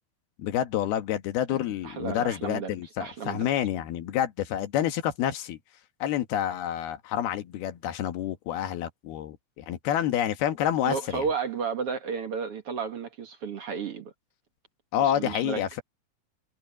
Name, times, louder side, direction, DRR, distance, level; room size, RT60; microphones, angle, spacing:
voice 1, 0.4-5.6 6.0-11.2 14.9-15.8, left 11 dB, 90° left, 3.4 m, -28 dB
voice 2, 1.5-3.5 10.8-14.1 15.0-15.6, right 6 dB, 50° right, 2.0 m, -33 dB
omnidirectional pair, 4.3 m